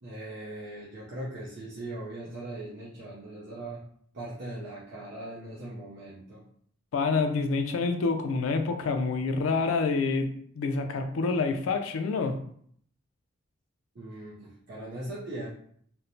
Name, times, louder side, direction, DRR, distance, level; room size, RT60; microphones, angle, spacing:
voice 1, 0.0-3.8 4.1-6.4 13.9-15.5, right 1 dB, 55° right, -7 dB, 0.5 m, -40 dB
voice 2, 6.9-12.4, left 4 dB, 90° left, 6 dB, 0.4 m, -27 dB
3.1 x 2.0 x 2.6 m, 0.63 s
head